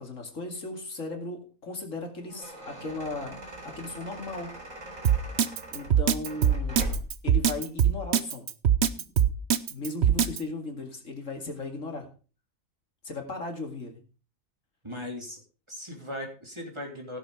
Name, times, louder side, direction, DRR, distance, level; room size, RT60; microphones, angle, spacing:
voice 1, 0.0-4.5 5.7-6.9 7.2-8.5 9.0-9.1 9.7-12.1 13.0-14.0, left 2 dB, 70° left, 3 dB, 2.7 m, -37 dB
sound 1, 2.0-7.3, right 1 dB, 80° right, 4.6 m, -39 dB
Drum kit, 5.0-10.4, right 9 dB, 55° right, 1.0 m, -22 dB
voice 2, 14.8-15.4 15.7-17.2, left 1 dB, 20° right, 0 dB, 3.2 m, -38 dB
16.5 x 7.0 x 4.9 m, 0.36 s
omnidirectional pair, 1.4 m